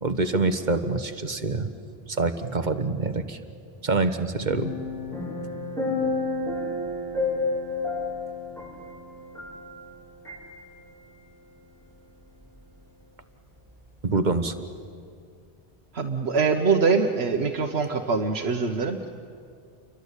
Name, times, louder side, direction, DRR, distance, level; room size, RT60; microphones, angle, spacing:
voice 1, 0.0-1.7 2.1-3.4 3.8-4.7 14.0-14.5, right 3 dB, 45° right, 9 dB, 1.4 m, -25 dB
sound 1, 4.5-9.9 10.2-10.4, left 3 dB, 5° left, 7.5 m, -30 dB
voice 2, 15.9-19.1, right 4 dB, 85° right, 2 dB, 1.4 m, -24 dB
29.5 x 23.5 x 8.3 m, 2.3 s
omnidirectional pair, 1.0 m